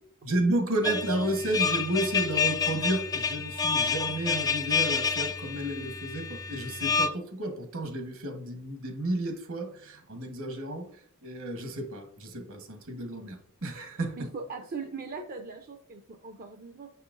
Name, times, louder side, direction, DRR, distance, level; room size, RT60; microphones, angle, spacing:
voice 1, 0.2-10.9 11.2-14.2, right 1 dB, 65° right, 1.2 m, -32 dB
sound 1, 0.8-7.1, left 6 dB, 15° left, 0.3 m, -29 dB
voice 2, 14.2-16.9, right 4 dB, 40° right, 0.5 m, -40 dB
6.7 x 5.6 x 2.5 m
head